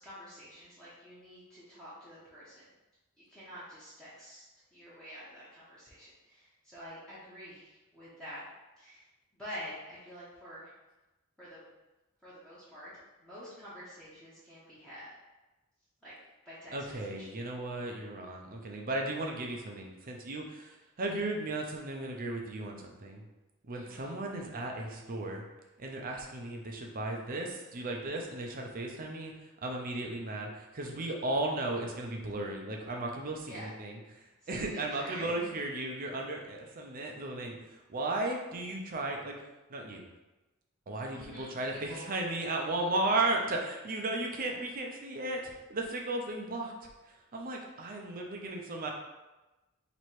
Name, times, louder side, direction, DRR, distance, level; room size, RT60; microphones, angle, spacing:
voice 1, 0.0-2.7 3.2-4.4 4.7-8.4 8.8-9.1 9.4-10.7 11.4-11.6 12.2-12.9 13.2-15.1 16.0-16.1 16.4-17.3 23.7-24.1 33.5-33.7 34.4-35.5 41.1-42.0, equal, 5° left, -11 dB, 0.9 m, -48 dB
voice 2, 16.7-23.2 23.6-25.4 25.8-39.4 39.7-40.1 40.9-46.7 47.1-48.9, right 2 dB, 40° right, 1 dB, 0.6 m, -35 dB
3.1 x 3.0 x 4.4 m, 1.1 s
head